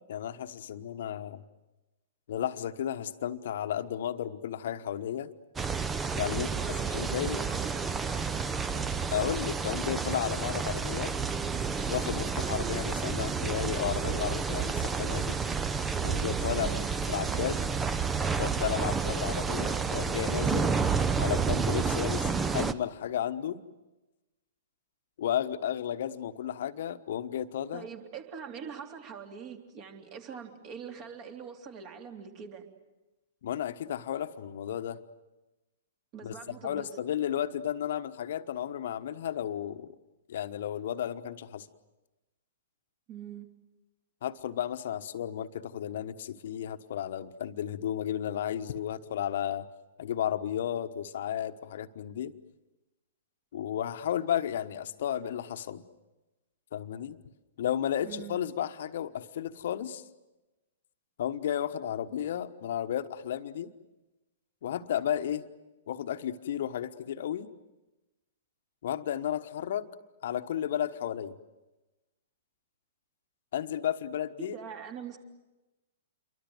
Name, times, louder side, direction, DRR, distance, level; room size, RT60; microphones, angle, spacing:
voice 1, 0.0-1.4 2.3-5.3 6.1-6.5 6.9-7.4 9.1-11.1 11.9-15.4 16.0-16.8 17.1-17.6 18.4-20.7 21.2-23.6 25.2-27.9 33.4-35.0 36.2-39.9 40.3-41.7 44.2-49.7 50.0-52.3 53.5-55.8 56.7-57.2 57.6-60.0 61.2-63.7 64.6-65.4 65.9-67.5 68.8-69.8 70.2-71.3 73.5-74.5, left 10 dB, 55° left, 9 dB, 1.2 m, -33 dB
sound 1, 5.6-22.7, right 5 dB, 15° right, 0.9 m, -30 dB
voice 2, 6.4-8.9 16.6-17.0 27.7-32.6 36.1-36.9 43.1-43.5 58.0-58.4 74.4-75.2, right 7 dB, 35° right, 4 dB, 3.3 m, -43 dB
28.5 x 23.5 x 7.9 m, 1.1 s
figure-of-eight pair, 110°, 0 cm